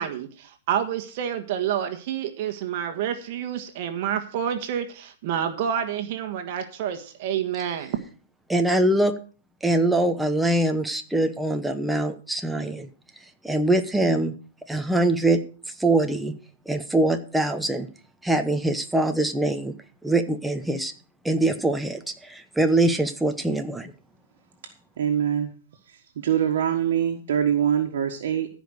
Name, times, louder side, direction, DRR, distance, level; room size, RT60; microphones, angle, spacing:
voice 1, 0.0-8.0, right 9 dB, 45° right, 7 dB, 1.4 m, -28 dB
voice 2, 8.5-9.1 9.6-12.9 13.4-14.3 14.7-16.3 16.7-17.9 18.2-19.7 20.0-20.9 21.2-23.9, right 2 dB, 5° right, 6 dB, 0.9 m, -23 dB
voice 3, 25.0-25.5 25.9-28.5, right 9 dB, 70° right, 2 dB, 1.5 m, -24 dB
15.0 x 5.2 x 6.4 m, 0.40 s
hypercardioid pair, 155°, 0 cm